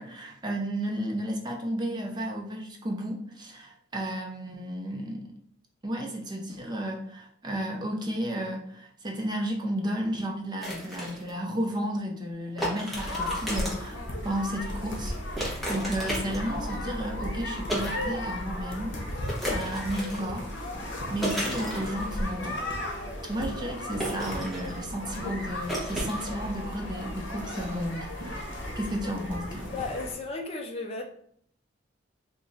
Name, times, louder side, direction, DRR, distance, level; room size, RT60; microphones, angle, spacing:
voice 1, 0.0-5.3 5.8-19.0 19.5-20.6 21.1-22.6 23.3-28.5 28.8-29.7, equal, 25° right, 0.6 m, -33 dB
sound 1, 10.6-11.3 12.6-13.9 15.4-16.6 17.7-18.0 18.3-18.4 19.3-20.3 21.2-22.0 24.0-24.9 25.7-26.3, equal, ahead, 1.0 m, -33 dB
sound 2, 12.9-30.2, left 1 dB, 75° left, 0.8 m, -35 dB
voice 2, 29.7-31.0, left 3 dB, 30° left, 0.5 m, -34 dB
3.1 x 2.4 x 3.8 m
head